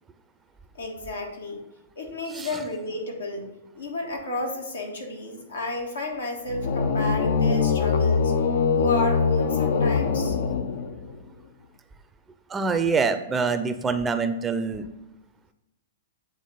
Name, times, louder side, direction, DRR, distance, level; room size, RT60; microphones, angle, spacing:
voice 1, 0.7-1.6 1.9-3.4 3.7-8.3 8.7-10.4, left 2 dB, 80° left, 1 dB, 1.5 m, -31 dB
sound 1, 6.5-11.2, left 5 dB, 65° left, 0.6 m, -23 dB
voice 2, 12.5-14.8, right 5 dB, 15° right, 9 dB, 0.5 m, -25 dB
8.3 x 3.6 x 5.3 m, 0.96 s
figure-of-eight pair, 110°, 0 cm